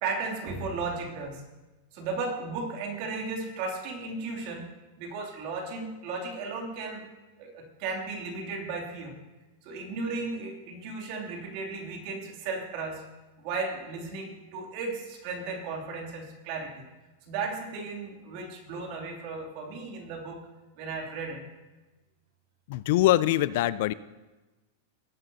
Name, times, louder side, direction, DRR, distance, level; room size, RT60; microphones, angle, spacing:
voice 1, 0.0-1.4 1.9-4.7 5.0-7.1 7.4-9.2 9.6-13.0 13.4-16.8 17.3-20.4 20.8-21.4, right 3 dB, 45° right, 1 dB, 2.6 m, -35 dB
voice 2, 22.7-23.9, left 15 dB, 55° left, 17 dB, 0.3 m, -23 dB
19.0 x 9.1 x 2.8 m, 1.1 s
supercardioid pair, 160°, 0 cm